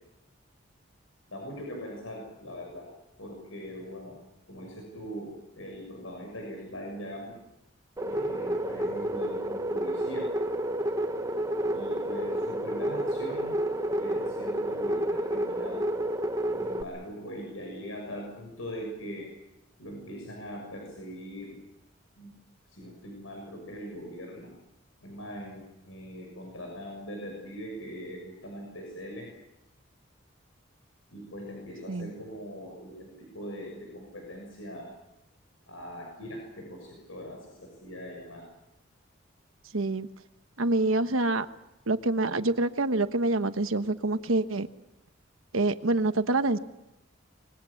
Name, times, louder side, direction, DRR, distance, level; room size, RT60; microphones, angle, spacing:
voice 1, 1.3-2.9 3.2-4.2 4.5-7.4 8.0-10.3 11.7-13.6 13.9-15.9 16.5-19.3 19.8-21.6 22.2-22.3 22.7-24.5 25.0-29.3 31.1-34.9 35.7-38.5, equal, 90° left, 1 dB, 6.7 m, -41 dB
sound 1, 8.0-16.8, right 1 dB, 15° right, 1.0 m, -30 dB
voice 2, 39.7-40.1 40.6-41.5 41.9-44.7 45.5-46.6, right 2 dB, 90° right, 10 dB, 1.2 m, -26 dB
25.5 x 22.5 x 7.2 m, 0.90 s
head